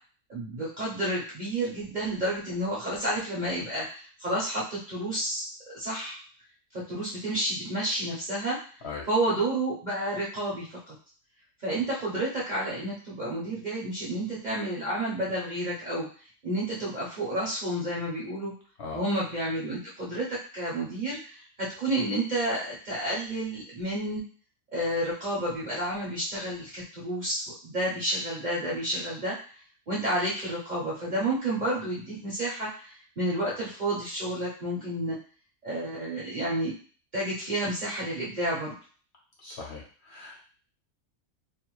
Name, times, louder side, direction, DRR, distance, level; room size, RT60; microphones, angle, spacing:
voice 1, 0.3-5.4 5.7-6.2 6.7-8.6 9.1-10.9 11.6-16.1 16.4-18.5 18.9-24.2 24.7-29.4 29.9-35.2 35.6-36.7 37.1-38.7, right 1 dB, 45° right, -7 dB, 0.6 m, -30 dB
voice 2, 39.4-40.4, left 4 dB, 55° left, -3 dB, 0.9 m, -39 dB
2.5 x 2.2 x 3.0 m, 0.41 s
omnidirectional pair, 1.5 m